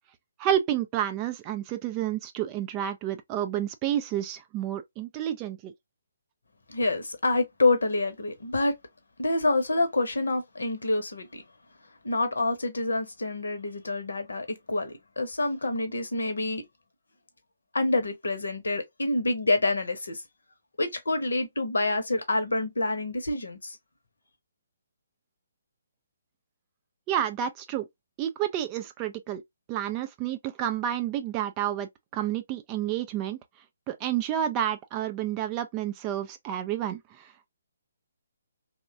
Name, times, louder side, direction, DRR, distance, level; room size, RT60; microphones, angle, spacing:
voice 1, 0.4-5.7 27.1-27.9 28.2-29.4 29.7-33.4 33.9-37.5, right 11 dB, 20° right, 0.3 m, -30 dB
voice 2, 6.7-8.7 9.2-11.4 12.0-16.6 17.7-20.2 20.8-23.8, left 2 dB, 65° left, 0.8 m, -27 dB
3.0 x 2.2 x 2.5 m
figure-of-eight pair, 135°, 0 cm